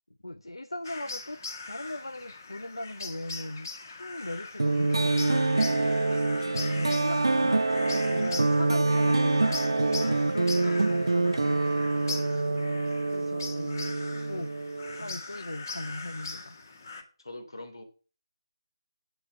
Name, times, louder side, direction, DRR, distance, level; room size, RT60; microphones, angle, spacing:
voice 1, 0.2-1.4 1.7-3.7 4.0-5.9 6.4-11.7 13.1-13.9 14.3-14.5 14.9-16.5, left 1 dB, 80° left, 0.7 m, -38 dB
sound 1, 0.8-17.0, left 3 dB, 45° left, 1.9 m, -41 dB
sound 2, 4.6-15.2, right 2 dB, 70° right, 0.5 m, -26 dB
voice 2, 12.2-12.8 15.3-15.4 17.2-17.8, left 2 dB, 65° left, 3.4 m, -45 dB
9.2 x 8.0 x 7.0 m
figure-of-eight pair, 150°, 3 cm